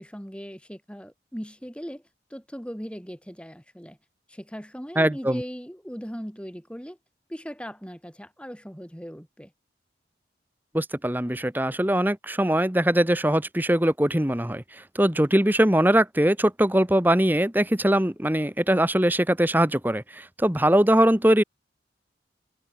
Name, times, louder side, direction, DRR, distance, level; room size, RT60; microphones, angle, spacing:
voice 1, 0.0-2.0 2.3-4.0 4.3-7.0 7.3-9.5, equal, 5° left, 7.5 m, -38 dB
voice 2, 5.0-5.4 10.7-21.4, right 1 dB, 10° right, 1.2 m, -22 dB
head